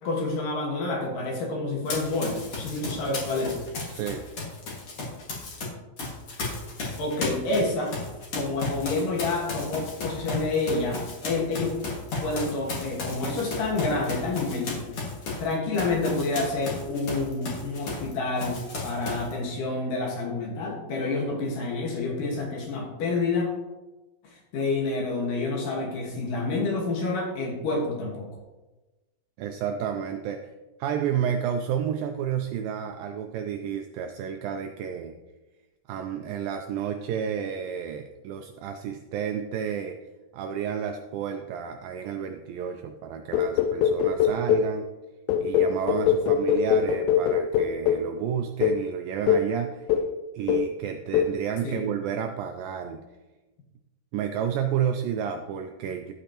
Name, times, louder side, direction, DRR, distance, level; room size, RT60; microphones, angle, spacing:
voice 1, 0.0-3.6 7.0-8.0 8.3-11.7 12.1-14.9 15.4-23.5 24.2-28.3 51.6-51.9, left 3 dB, 65° left, -1 dB, 2.9 m, -28 dB
Run, 1.9-5.6 6.0-18.1 18.4-19.3, left 3 dB, 45° left, 2.2 m, -34 dB
voice 2, 3.9-4.2 29.4-30.5 30.8-35.2 35.9-40.0 40.3-44.9 45.4-49.9 50.3-53.0 54.1-56.1, right 8 dB, 85° right, 5 dB, 2.0 m, -31 dB
sound 1, 43.3-44.8 45.3-48.1 48.6-48.8 49.3-49.5 49.9-50.2 50.5-50.8 51.1-51.4, left 8 dB, 85° left, 2.1 m, -23 dB
12.0 x 8.4 x 2.9 m, 1.1 s
omnidirectional pair, 4.6 m